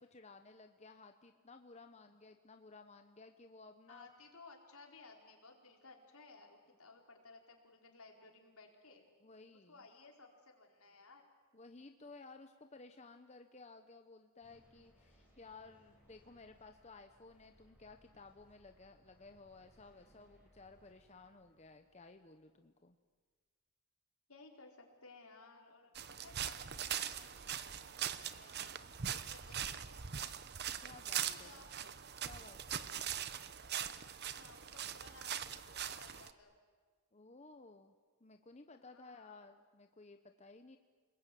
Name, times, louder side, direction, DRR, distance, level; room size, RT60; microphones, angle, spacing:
voice 1, 0.0-4.1 9.2-9.8 11.5-23.0 29.1-29.2 30.8-31.7 32.2-33.1 37.1-37.9 38.2-40.8, left 3 dB, 30° left, 6 dB, 1.0 m, -57 dB
voice 2, 3.9-9.0 9.7-11.3 15.4-15.6 24.3-28.8 29.3-29.8 31.2-31.7 34.3-36.6 38.8-39.4, left 3 dB, 75° left, 2 dB, 4.6 m, -59 dB
sound 1, 14.4-22.6, equal, 5° right, 6.0 m, -69 dB
sound 2, 25.9-36.3, right 9 dB, 45° right, 0.9 m, -41 dB
29.5 x 21.0 x 9.3 m, 1.5 s
head